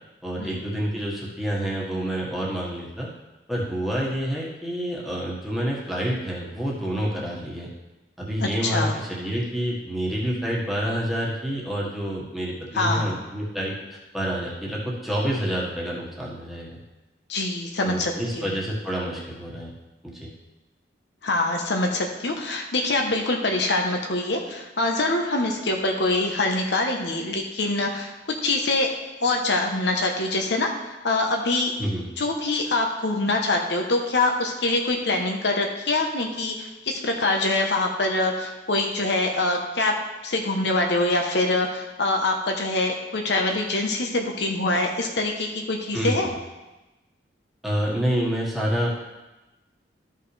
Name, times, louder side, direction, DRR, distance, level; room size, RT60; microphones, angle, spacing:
voice 1, 0.2-3.1 3.5-7.7 8.2-16.8 17.8-19.7 20.0-20.3 31.8-32.0 45.9-46.4 47.6-48.9, equal, ahead, -6 dB, 1.5 m, -28 dB
voice 2, 8.4-9.0 12.7-13.1 17.3-18.5 21.2-28.1 28.4-28.9 29.2-30.7 31.0-31.8 32.2-39.9 40.2-46.3, left 2 dB, 65° left, 2 dB, 1.0 m, -24 dB
13.5 x 5.6 x 3.3 m, 1.1 s
head